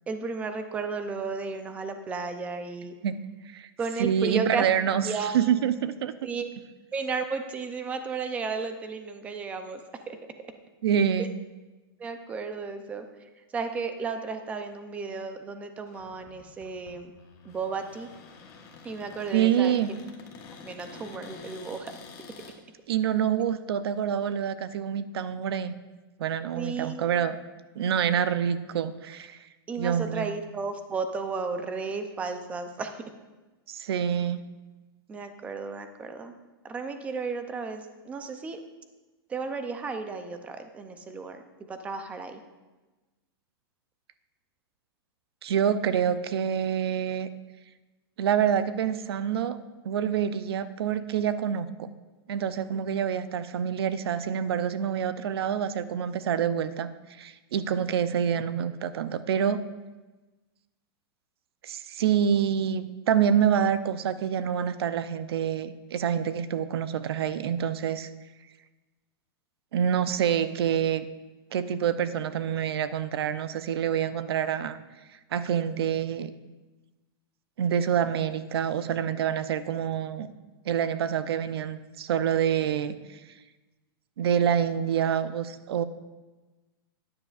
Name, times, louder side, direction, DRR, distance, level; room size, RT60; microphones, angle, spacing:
voice 1, 0.1-2.9 3.8-4.6 5.0-5.3 6.2-6.5 6.9-9.8 10.1-10.2 11.2-11.3 12.0-13.1 13.5-17.1 17.4-18.1 18.8-20.0 20.6-21.9 26.5-27.0 29.7-33.0 35.1-36.3 36.6-38.6 39.3-41.4 41.7-42.4 52.7-52.8, right 4 dB, 10° right, 8 dB, 0.5 m, -33 dB
voice 2, 4.0-6.1 10.8-11.3 19.3-19.9 22.9-25.7 26.2-27.4 27.8-29.4 29.8-30.3 33.7-34.4 45.4-47.3 48.2-49.6 49.8-51.9 52.3-56.9 57.2-59.6 61.6-68.1 69.7-71.0 71.5-74.8 75.3-76.3 77.6-80.3 80.7-83.2 84.2-85.8, right 8 dB, 80° right, 13 dB, 0.6 m, -27 dB
Cupboard open or close, 15.9-22.6, left 5 dB, 25° left, 1.0 m, -48 dB
12.5 x 9.6 x 2.4 m, 1.2 s
supercardioid pair, 165°, 13 cm